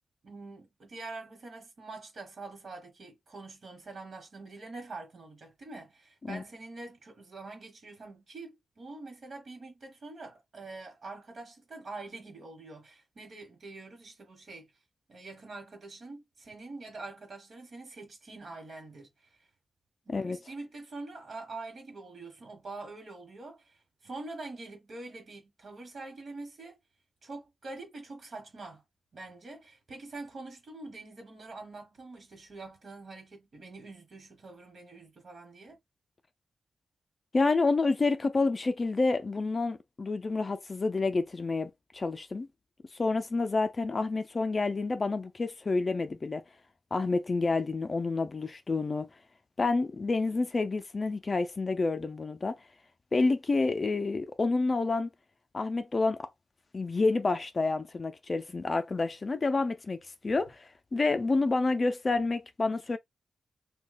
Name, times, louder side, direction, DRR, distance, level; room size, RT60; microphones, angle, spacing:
voice 1, 0.2-14.7 15.1-19.5 20.0-26.8 27.2-28.8 29.1-35.8, right 3 dB, 55° right, 1.1 m, -45 dB
voice 2, 20.1-20.4 37.3-42.5 42.9-46.4 46.9-49.1 49.6-52.6 53.1-55.1 55.5-56.3 56.7-63.0, left 3 dB, 35° left, 0.4 m, -29 dB
2.8 x 2.2 x 4.0 m
wide cardioid pair, 125°, 0 cm